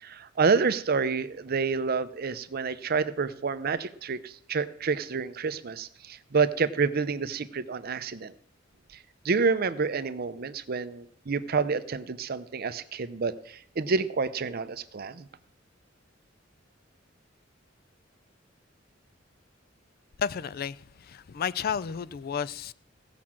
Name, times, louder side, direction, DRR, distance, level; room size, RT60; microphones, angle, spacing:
voice 1, 0.0-8.3 9.2-15.3, right 5 dB, 50° right, 0.6 m, -28 dB
voice 2, 20.2-22.7, left 7 dB, 50° left, 0.4 m, -32 dB
16.0 x 6.0 x 7.4 m
head